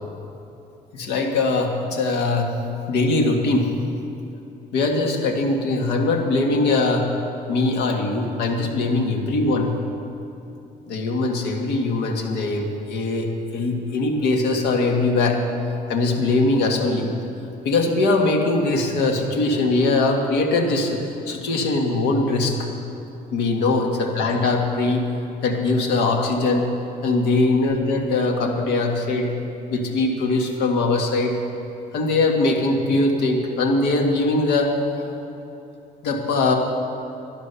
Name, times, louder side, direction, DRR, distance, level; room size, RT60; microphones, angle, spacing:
voice 1, 0.9-2.5 2.9-3.7 4.7-7.1 7.5-9.8 10.9-15.4 15.9-17.1 17.6-22.6 23.3-25.0 25.4-26.7 27.0-29.3 29.7-31.3 31.9-34.7 35.0-35.1 36.0-36.5, left 2 dB, 80° left, 2 dB, 1.8 m, -21 dB
11.5 x 11.5 x 6.9 m, 2.9 s
cardioid pair, 110°, 17 cm